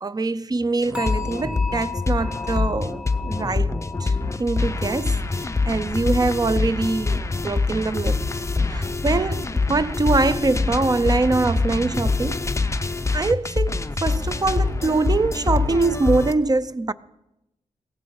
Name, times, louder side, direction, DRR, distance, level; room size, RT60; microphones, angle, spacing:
voice 1, 0.0-3.0 3.3-3.7 4.0-4.1 4.4-12.5 13.1-16.9, right 3 dB, 25° right, 0.5 m, -23 dB
sound 1, 0.8-16.3, left 3 dB, 20° left, 0.7 m, -25 dB
sound 2, 0.9-8.0 8.3-8.7 9.2-9.3, left 5 dB, 5° right, 2.1 m, -38 dB
17.0 x 14.5 x 5.5 m
wide cardioid pair, 105°, 15 cm